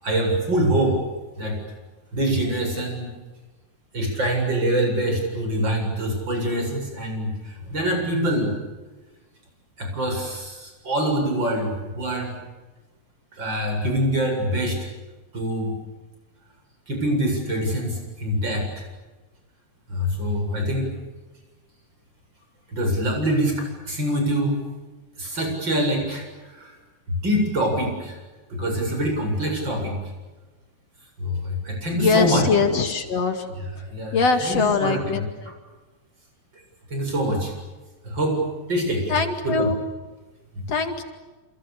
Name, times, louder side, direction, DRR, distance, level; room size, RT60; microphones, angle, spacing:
voice 1, 0.0-1.0 1.4-1.6 2.1-3.1 3.9-8.5 9.8-12.4 13.4-14.8 15.3-15.7 16.9-18.8 19.9-20.9 22.7-24.6 25.2-26.8 27.1-28.2 28.5-29.9 31.2-32.5 33.5-35.2 36.9-37.5 38.0-38.4 38.7-39.7, right 1 dB, 35° right, 3 dB, 8.5 m, -25 dB
voice 2, 32.0-33.4 34.1-35.5 39.1-39.8 40.7-41.0, left 4 dB, 60° left, 6 dB, 3.3 m, -22 dB
29.0 x 28.5 x 7.0 m, 1.2 s
omnidirectional pair, 3.4 m